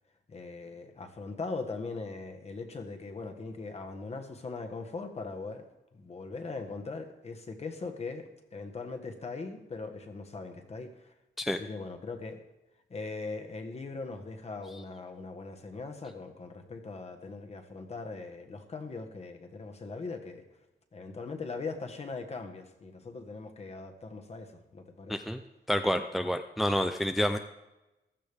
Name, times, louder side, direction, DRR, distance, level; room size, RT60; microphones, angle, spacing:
voice 1, 0.3-5.7 5.9-11.1 11.6-12.4 12.9-20.4 20.9-25.2, left 3 dB, 35° left, 5 dB, 1.5 m, -40 dB
voice 2, 25.1-25.4 25.7-27.4, equal, ahead, 7 dB, 0.5 m, -28 dB
15.0 x 13.5 x 3.6 m, 0.99 s
wide cardioid pair, 150°, 18 cm